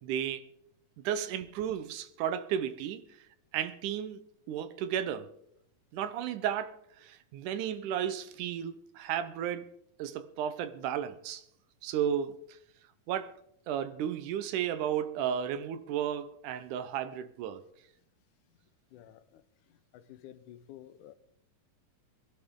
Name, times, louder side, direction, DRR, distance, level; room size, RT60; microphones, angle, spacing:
voice 1, 0.0-0.4 1.0-3.0 3.5-4.2 4.5-5.3 5.9-6.7 7.0-9.7 10.0-11.4 11.8-12.4 13.1-13.3 13.7-17.6, right 9 dB, 85° right, 2.3 m, -33 dB
voice 2, 18.9-19.4 19.7-21.1, left 12 dB, 85° left, 2.2 m, -52 dB
21.5 x 12.0 x 3.7 m
omnidirectional pair, 3.5 m